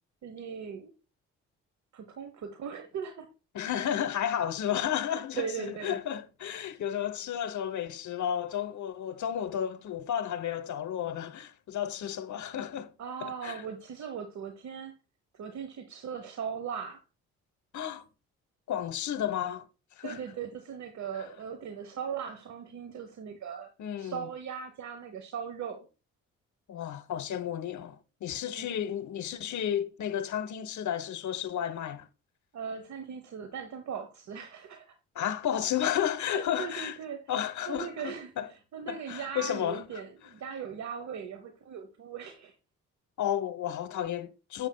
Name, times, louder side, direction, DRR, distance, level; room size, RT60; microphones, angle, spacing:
voice 1, 0.2-0.9 1.9-3.3 5.1-6.0 13.0-14.9 15.3-17.0 20.0-23.7 24.0-25.9 28.6-28.7 32.5-35.0 36.3-37.2 37.7-42.6, right 7 dB, 55° right, 1.0 m, -39 dB
voice 2, 3.5-12.9 13.2-13.6 17.7-18.0 18.7-19.7 20.0-20.2 23.8-24.3 26.7-32.1 35.1-37.0 37.3-38.5 38.9-39.8 43.2-44.7, left 10 dB, 55° left, 1.0 m, -32 dB
7.4 x 6.8 x 2.3 m
hypercardioid pair, 55°, 34 cm